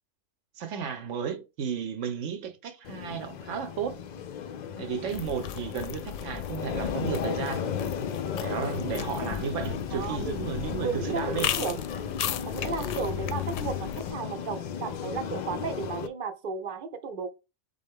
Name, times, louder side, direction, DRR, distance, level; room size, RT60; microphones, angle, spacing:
voice 1, 0.6-4.0 4.8-7.8 8.4-11.5, right 7 dB, 80° right, 1.0 m, -33 dB
sound 1, 2.8-16.1, left 7 dB, 60° left, 0.5 m, -35 dB
sound 2, 5.1-14.1, left 10 dB, 80° left, 0.9 m, -36 dB
voice 2, 9.9-10.4 10.8-11.8 12.5-17.3, right 5 dB, 50° right, 0.7 m, -34 dB
3.9 x 3.8 x 3.5 m
omnidirectional pair, 1.3 m